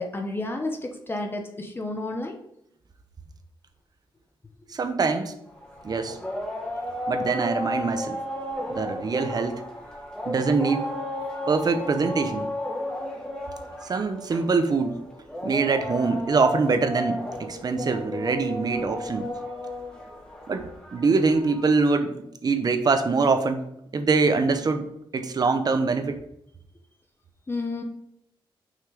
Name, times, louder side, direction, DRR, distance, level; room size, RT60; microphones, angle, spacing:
voice 1, 0.0-2.4 27.5-27.8, left 2 dB, 25° left, 3 dB, 0.9 m, -31 dB
voice 2, 4.7-5.3 5.8-6.2 7.1-8.2 8.7-9.6 10.3-10.9 11.5-12.5 13.8-15.0 15.4-19.3 20.5-20.6 20.9-23.6 23.9-26.2, right 4 dB, 45° right, 8 dB, 0.9 m, -24 dB
sound 1, 5.5-21.8, left 1 dB, 10° left, 1.6 m, -34 dB
6.3 x 5.8 x 5.0 m, 0.78 s
wide cardioid pair, 130°, 9 cm